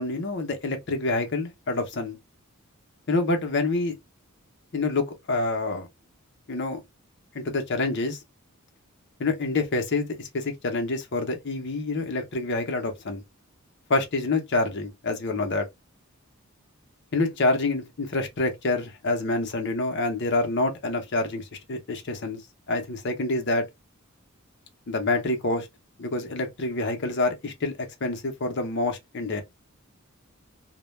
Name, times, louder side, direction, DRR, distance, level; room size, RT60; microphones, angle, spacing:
voice 1, 0.0-2.2 3.1-3.9 4.7-5.9 6.5-6.8 7.3-8.2 9.2-13.2 13.9-15.7 17.1-22.4 22.7-23.7 24.9-25.7 26.0-29.4, left 2 dB, 55° left, 0.7 m, -27 dB
2.2 x 2.1 x 3.0 m
head